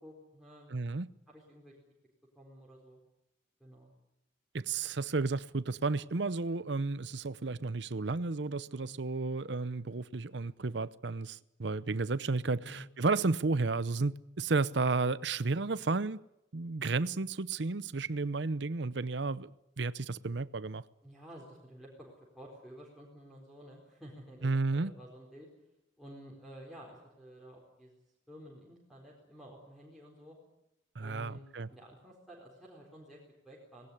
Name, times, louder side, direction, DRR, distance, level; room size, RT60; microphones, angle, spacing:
voice 1, 0.0-0.7 1.3-1.8 2.3-3.0 3.6-3.9 8.7-9.0 12.6-12.9 21.0-25.5 26.0-28.0 28.3-30.4 31.0-33.9, equal, ahead, 4.3 m, -52 dB
voice 2, 0.7-1.1 4.5-16.2 16.5-19.5 19.8-20.8 24.4-24.9 31.0-31.7, right 3 dB, 65° right, 0.7 m, -32 dB
19.5 x 18.5 x 10.0 m
head